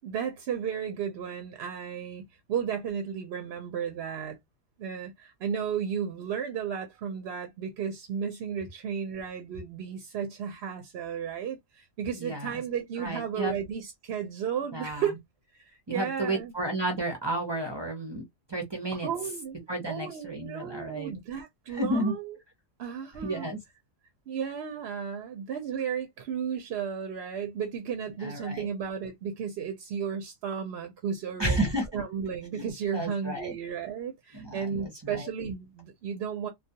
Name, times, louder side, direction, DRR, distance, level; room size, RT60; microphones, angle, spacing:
voice 1, 0.0-4.4 4.8-15.2 15.5-16.5 19.0-22.4 22.8-23.5 24.3-36.5, right 7 dB, 65° right, 0.7 m, -34 dB
voice 2, 12.1-12.5 13.0-13.6 14.7-15.0 15.9-19.1 19.7-21.1 21.7-22.1 23.2-23.6 28.2-28.7 31.4-32.0 32.6-32.7 32.9-33.5 34.3-35.3, right 1 dB, 30° right, 0.4 m, -32 dB
2.3 x 2.2 x 2.7 m
omnidirectional pair, 1.3 m